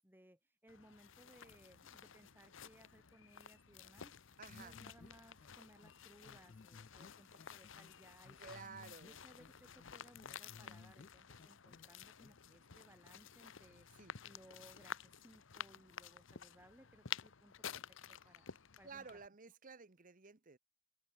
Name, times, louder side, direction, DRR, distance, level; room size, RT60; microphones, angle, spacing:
voice 1, 0.0-8.7 9.0-18.5 18.8-19.2, right 1 dB, 10° right, 2.5 m, -64 dB
sound 1, 0.7-19.3, left 8 dB, 65° left, 1.0 m, -52 dB
voice 2, 4.4-4.8 8.4-9.2 14.0-14.1 18.8-20.6, right 5 dB, 40° right, 1.1 m, -53 dB
sound 2, 4.5-5.1 5.4-5.5 5.8-5.9 6.2-7.9 8.2-9.1 9.4-11.1 11.4-11.8 12.2-12.3, left 4 dB, 40° left, 0.4 m, -59 dB
head